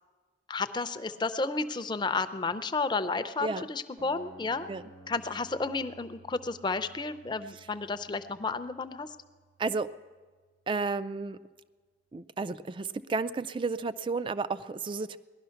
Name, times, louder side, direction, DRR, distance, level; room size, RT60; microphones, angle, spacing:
voice 1, 0.5-4.7 5.1-9.2, left 3 dB, 25° left, 11 dB, 0.5 m, -32 dB
sound 1, 4.0-10.0, right 1 dB, 80° right, 3.4 m, -55 dB
voice 2, 10.7-11.4 12.1-15.2, right 4 dB, 25° right, 15 dB, 0.3 m, -32 dB
18.5 x 12.0 x 5.7 m, 1.4 s
head